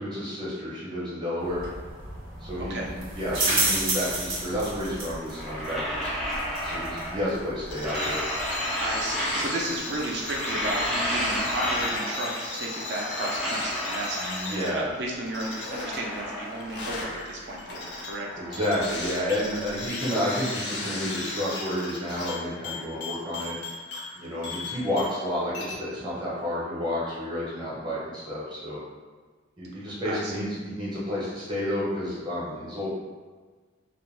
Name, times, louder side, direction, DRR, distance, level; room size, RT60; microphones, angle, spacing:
voice 1, 0.0-1.7 2.4-6.1 6.6-8.2 14.2-14.9 18.4-23.6 24.1-28.8 29.6-32.9, equal, 25° right, -8 dB, 0.8 m, -30 dB
sound 1, 1.4-12.0, right 2 dB, 90° right, 0.8 m, -33 dB
voice 2, 2.6-2.9 8.8-14.2 14.5-18.3 30.1-30.4, right 1 dB, 55° right, -2 dB, 0.5 m, -33 dB
sound 2, 5.2-7.4 7.7-9.9 10.1-12.4 12.7-14.7 15.2-17.2 17.5-19.7, equal, ahead, 0.4 m, -32 dB
sound 3, 7.7-25.3 25.5-25.8, left 2 dB, 60° left, 0.5 m, -36 dB
2.4 x 2.2 x 3.1 m, 1.4 s
head